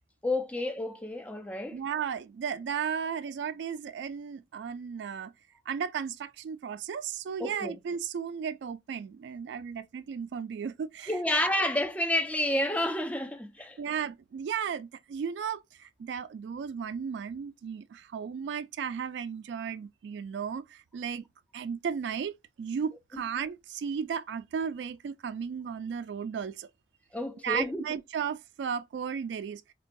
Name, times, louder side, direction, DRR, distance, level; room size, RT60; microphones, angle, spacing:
voice 1, 0.2-1.8 7.4-7.7 11.1-13.8 23.1-23.2 27.1-27.8, left 1 dB, 10° left, 0.4 m, -30 dB
voice 2, 1.7-5.3 5.7-11.4 13.8-21.2 21.5-22.3 22.6-26.7 27.4-29.6, right 7 dB, 80° right, 0.3 m, -35 dB
3.8 x 2.2 x 2.5 m
head